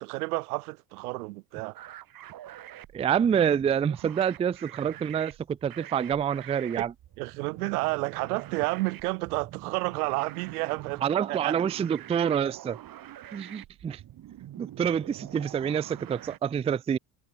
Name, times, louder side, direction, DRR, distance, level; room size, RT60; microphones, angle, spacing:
voice 1, 0.0-1.8 7.2-11.0 11.3-11.6, right 24 dB, 85° right, 1.5 m, -30 dB
sound 1, 1.7-16.4, right 13 dB, 50° right, 3.7 m, -46 dB
voice 2, 2.9-6.9 11.0-12.8 13.3-14.0 14.6-17.0, right 8 dB, 15° right, 0.4 m, -27 dB
supercardioid pair, 95°, 44 cm